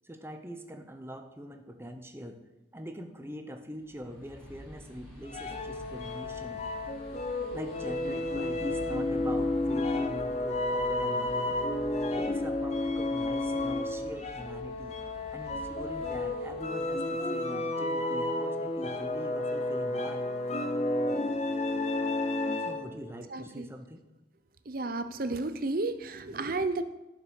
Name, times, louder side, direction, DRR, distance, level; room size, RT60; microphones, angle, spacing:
voice 1, 0.0-2.4 2.7-6.6 7.5-11.6 12.2-15.0 15.3-20.3 22.6-24.0, equal, 10° right, 6 dB, 0.8 m, -43 dB
sound 1, 3.8-17.3, equal, 5° left, 4.1 m, -49 dB
sound 2, 5.3-23.0, left 2 dB, 35° left, 0.8 m, -31 dB
voice 2, 23.3-23.7 24.7-26.8, right 3 dB, 45° right, 10 dB, 0.7 m, -32 dB
11.0 x 6.0 x 6.4 m, 1.0 s
head